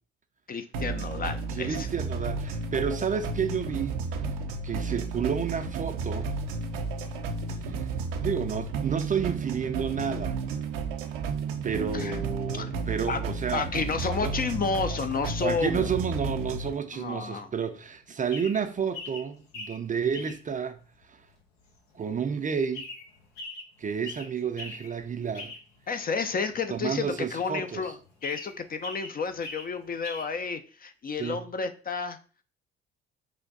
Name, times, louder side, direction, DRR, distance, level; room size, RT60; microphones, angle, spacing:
voice 1, 0.5-1.9 11.9-12.2 12.5-12.7 13.1-13.2 13.5-15.9 16.9-17.5 25.9-32.2, left 5 dB, 30° left, 0.4 m, -31 dB
sound 1, 0.7-16.7, right 4 dB, 75° right, 0.6 m, -32 dB
voice 2, 1.5-4.0 4.6-6.4 7.7-7.9 8.2-10.4 11.6-13.7 14.2-14.4 15.4-20.8 21.1-21.2 21.9-22.9 23.8-25.6 26.7-27.9 31.2-31.4, right 6 dB, 25° right, 0.4 m, -31 dB
sound 2, 13.7-16.3 16.5-30.4, left 3 dB, 80° left, 0.8 m, -44 dB
3.2 x 2.5 x 3.9 m
hypercardioid pair, 50°, 31 cm